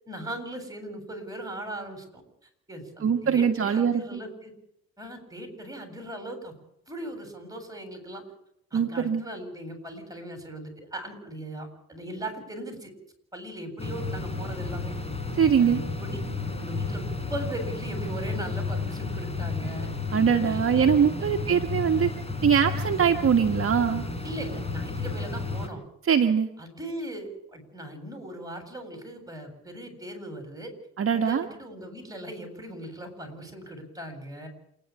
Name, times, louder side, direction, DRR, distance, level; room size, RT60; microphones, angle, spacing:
voice 1, 0.1-2.2 2.7-4.5 5.0-6.5 6.9-8.2 8.7-12.9 13.3-14.9 15.6-16.2 16.5-19.9 20.4-20.6 21.2-21.3 24.2-25.8 26.6-30.7 31.1-34.5, right 1 dB, 10° right, 5 dB, 7.8 m, -39 dB
voice 2, 3.0-4.2 8.7-9.2 15.4-15.8 20.1-22.1 22.4-24.0 26.1-26.5 31.0-31.4, right 7 dB, 45° right, 5 dB, 1.5 m, -22 dB
sound 1, 13.8-25.7, left 3 dB, 20° left, 4.0 m, -32 dB
28.0 x 10.5 x 9.1 m, 0.76 s
cardioid pair, 90°, 30 cm